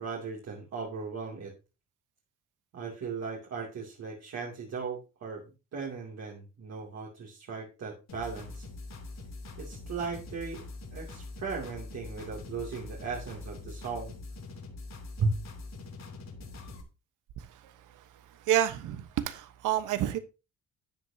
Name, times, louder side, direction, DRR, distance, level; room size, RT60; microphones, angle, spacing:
voice 1, 0.0-1.5 2.7-5.4 5.7-8.6 9.6-10.6 10.9-14.1 15.2-15.3, right 4 dB, 60° right, 2.8 m, -36 dB
sound 1, 8.1-16.8, left 2 dB, 60° left, 3.0 m, -43 dB
voice 2, 18.5-20.2, right 11 dB, 85° right, 1.1 m, -28 dB
12.0 x 8.3 x 2.8 m
cardioid pair, 90°, 30 cm